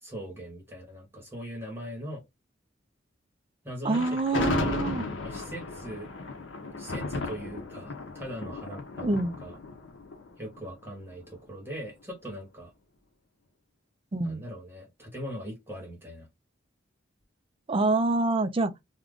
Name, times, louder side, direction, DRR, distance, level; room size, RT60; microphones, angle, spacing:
voice 1, 0.0-2.2 3.6-4.8 5.2-6.1 6.8-9.6 10.4-12.7 14.2-16.3, equal, 10° right, 1.0 m, -40 dB
voice 2, 3.8-5.1 9.0-9.3 14.1-14.4 17.7-18.7, right 3 dB, 30° right, 0.4 m, -26 dB
Thunder, 3.9-11.1, left 3 dB, 85° left, 0.6 m, -34 dB
2.4 x 2.2 x 3.5 m
head